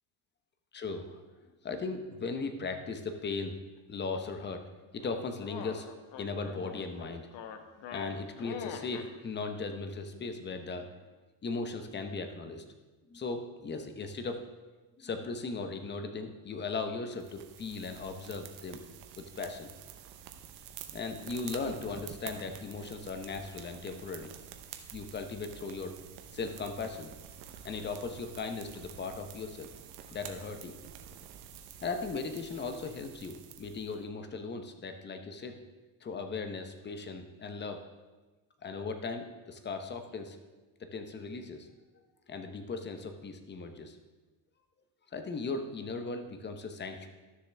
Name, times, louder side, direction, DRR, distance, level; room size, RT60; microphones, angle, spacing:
voice 1, 0.7-1.2 1.6-3.6 3.9-4.6 4.9-5.9 6.2-7.3 7.9-10.9 11.4-12.6 13.1-14.4 15.0-18.8 19.2-19.7 20.9-24.3 24.9-25.9 26.3-27.1 27.6-29.7 30.1-30.8 31.8-35.6 36.0-37.8 38.6-40.4 40.8-41.7 42.3-44.0 45.1-47.1, left 4 dB, 20° left, 6 dB, 0.9 m, -37 dB
sound 1, 5.0-9.1, left 7 dB, 60° left, 1.0 m, -43 dB
sound 2, 17.2-34.0, right 9 dB, 85° right, 1.0 m, -49 dB
12.5 x 6.8 x 3.5 m, 1.2 s
cardioid pair, 115°, 49 cm